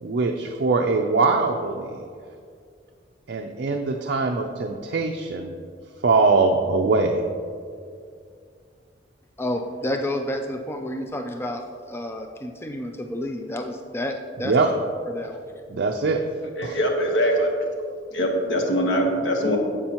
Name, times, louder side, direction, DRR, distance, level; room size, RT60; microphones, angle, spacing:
voice 1, 0.0-2.0 3.3-5.5 6.0-7.3 14.4-14.7 15.7-16.2 16.6-16.8, right 3 dB, 60° right, 3 dB, 0.5 m, -22 dB
voice 2, 9.4-14.5 15.1-15.4, left 1 dB, 15° left, 5 dB, 0.4 m, -30 dB
voice 3, 16.6-17.5 18.1-19.6, equal, 70° left, 1 dB, 1.2 m, -22 dB
9.9 x 7.6 x 3.0 m, 2.2 s
head